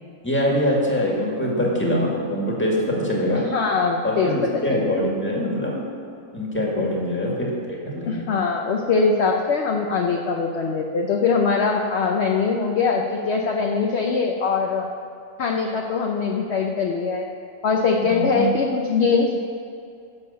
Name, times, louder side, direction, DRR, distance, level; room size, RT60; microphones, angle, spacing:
voice 1, 0.2-3.5 4.0-5.9 6.3-8.3 17.9-18.5, equal, 10° left, -3 dB, 1.9 m, -24 dB
voice 2, 3.3-4.9 6.8-6.9 8.1-14.9 15.4-17.3 17.6-19.4, left 4 dB, 55° left, 1 dB, 0.9 m, -22 dB
11.0 x 6.8 x 6.8 m, 2.5 s
omnidirectional pair, 1.5 m